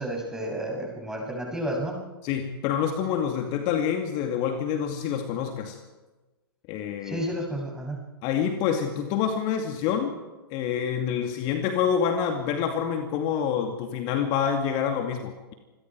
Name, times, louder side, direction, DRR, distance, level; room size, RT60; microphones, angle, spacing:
voice 1, 0.0-1.9 7.0-8.0, right 1 dB, 5° right, 0 dB, 7.4 m, -31 dB
voice 2, 2.2-5.8 6.7-7.2 8.2-10.1 10.5-15.5, left 8 dB, 40° left, 5 dB, 2.4 m, -27 dB
28.0 x 21.5 x 4.8 m, 1.2 s
figure-of-eight pair, 110°, 13 cm